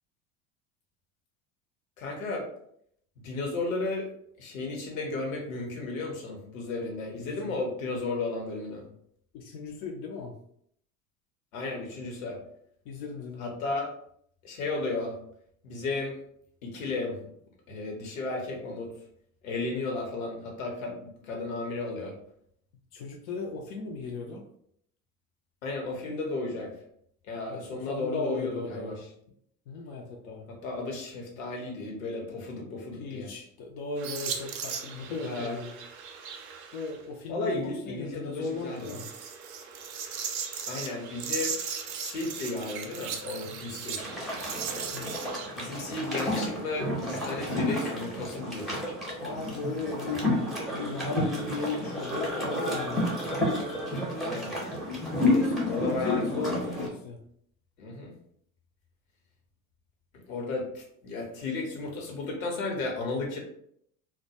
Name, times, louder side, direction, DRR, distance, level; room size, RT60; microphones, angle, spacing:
voice 1, 2.0-2.5 3.2-4.1 4.4-8.8 11.5-12.4 13.4-13.9 14.4-15.1 15.6-16.2 16.6-17.2 17.7-18.9 19.4-22.1 25.6-26.7 27.3-29.0 30.5-33.3 35.2-35.6 37.3-38.9 40.7-41.6 41.9-44.0 45.5-48.8 54.2-54.5 55.7-56.2 57.8-58.1 60.3-63.4, left 3 dB, 65° left, 1 dB, 0.9 m, -34 dB
voice 2, 7.2-7.6 9.3-10.3 12.9-13.5 22.9-24.4 27.5-29.0 29.7-30.5 33.0-35.7 36.7-39.1 43.4-43.6 44.9-45.2 49.2-50.4 50.7-53.2 55.2-57.2, left 3 dB, 45° left, 0 dB, 0.4 m, -36 dB
sound 1, 34.0-37.0 38.6-45.5, right 7 dB, 45° right, 0.5 m, -37 dB
sound 2, 44.0-56.9, left 1 dB, ahead, 0.6 m, -30 dB
2.2 x 2.1 x 2.7 m, 0.68 s
figure-of-eight pair, 75°, 43 cm